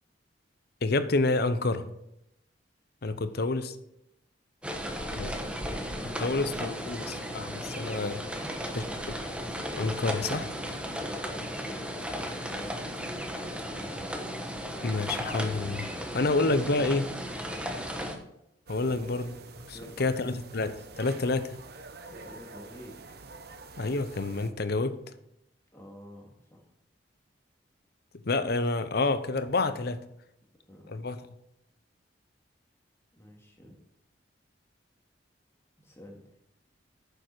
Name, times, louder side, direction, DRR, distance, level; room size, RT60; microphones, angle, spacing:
voice 1, 0.8-1.9 3.0-3.8 5.2-5.3 6.2-7.0 7.3-8.2 9.8-10.5 14.8-17.1 18.7-19.3 19.6-21.6 23.8-24.9 28.3-30.0 30.9-31.2, left 3 dB, 55° left, 12 dB, 0.8 m, -28 dB
sound 1, 4.6-18.2, equal, 5° right, 1.1 m, -35 dB
voice 2, 4.8-7.0 8.3-9.2 9.8-10.1 10.6-13.4 13.7-14.2 18.9-19.1 19.7-20.4 22.1-23.0 25.7-26.7 30.7-31.0 33.1-33.8 35.8-36.3, equal, 15° left, 0 dB, 2.2 m, -49 dB
sound 2, 18.7-24.5, right 3 dB, 55° right, 0.9 m, -48 dB
9.7 x 6.9 x 6.1 m, 0.82 s
head